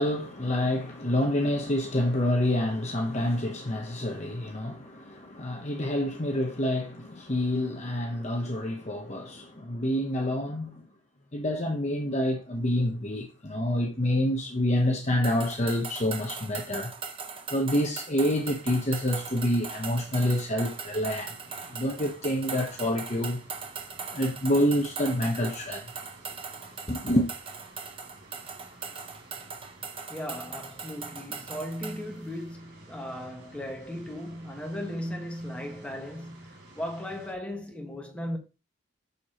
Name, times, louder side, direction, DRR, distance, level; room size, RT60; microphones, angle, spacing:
voice 1, 0.0-10.8 11.3-16.9 17.5-21.4 21.7-23.4 24.1-25.9 26.9-27.3, left 1 dB, 35° left, 1.0 m, -27 dB
sound 1, 15.2-32.0, right 5 dB, 30° right, 0.8 m, -40 dB
sound 2, 18.4-37.3, right 1 dB, 65° right, 4.1 m, -53 dB
voice 2, 30.1-38.4, equal, 5° left, 1.5 m, -37 dB
7.0 x 6.6 x 3.0 m
head